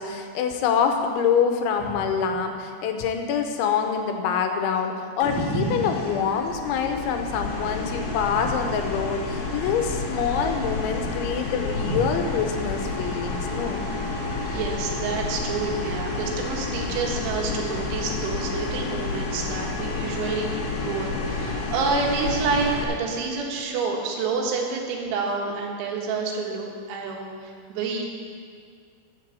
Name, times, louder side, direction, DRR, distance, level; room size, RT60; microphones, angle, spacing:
voice 1, 0.0-13.8, left 6 dB, 80° left, 5 dB, 3.1 m, -25 dB
sound 1, 5.2-22.8, left 3 dB, 60° left, 2.2 m, -30 dB
voice 2, 5.3-5.8 8.3-8.5 11.9-12.1 14.4-28.1, right 4 dB, 75° right, 0 dB, 3.7 m, -28 dB
11.0 x 7.8 x 7.6 m, 2.1 s
omnidirectional pair, 5.7 m